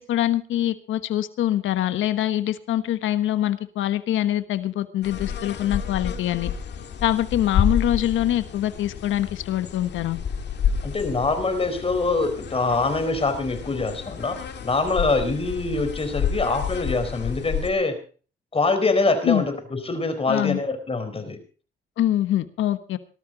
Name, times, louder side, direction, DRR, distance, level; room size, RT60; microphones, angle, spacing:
voice 1, 0.0-6.5 7.0-10.2 19.2-19.4 20.3-20.6 22.0-23.0, left 12 dB, 80° left, 12 dB, 1.3 m, -24 dB
sound 1, 5.0-17.7, left 7 dB, 60° left, 2.2 m, -30 dB
voice 2, 10.8-18.0 18.5-21.4, left 3 dB, 30° left, 8 dB, 4.3 m, -24 dB
19.0 x 13.0 x 4.0 m, 0.39 s
cardioid pair, 90°, 20 cm